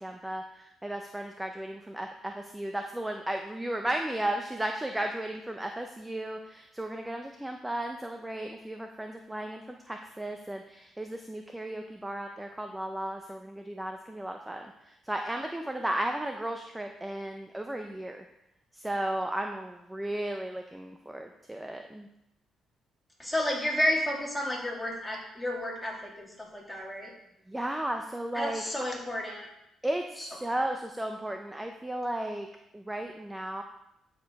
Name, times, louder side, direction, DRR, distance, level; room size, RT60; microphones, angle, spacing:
voice 1, 0.0-14.7 15.1-18.2 18.7-22.1 27.5-28.6 29.8-32.5 32.7-33.6, right 1 dB, 10° right, 4 dB, 0.7 m, -34 dB
voice 2, 23.2-27.1 28.3-29.5 30.2-30.3, left 1 dB, 5° left, -3 dB, 3.1 m, -31 dB
11.5 x 5.2 x 4.8 m, 0.86 s
cardioid pair, 90°, 0 cm